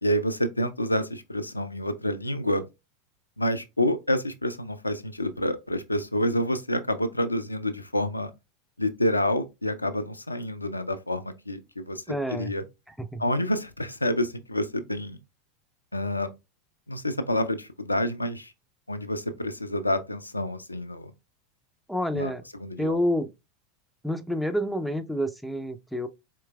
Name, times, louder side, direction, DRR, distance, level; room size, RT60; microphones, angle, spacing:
voice 1, 0.0-2.7 3.4-8.3 8.8-12.0 12.3-12.6 13.2-15.2 15.9-16.3 16.9-18.5 18.9-21.1 22.1-22.3 22.6-23.0, left 1 dB, 90° left, 0.4 m, -28 dB
voice 2, 12.1-12.5 13.0-13.2 21.9-22.4 22.8-23.3 24.0-26.1, equal, ahead, 0.4 m, -28 dB
4.4 x 3.1 x 2.2 m
figure-of-eight pair, 85°, 0 cm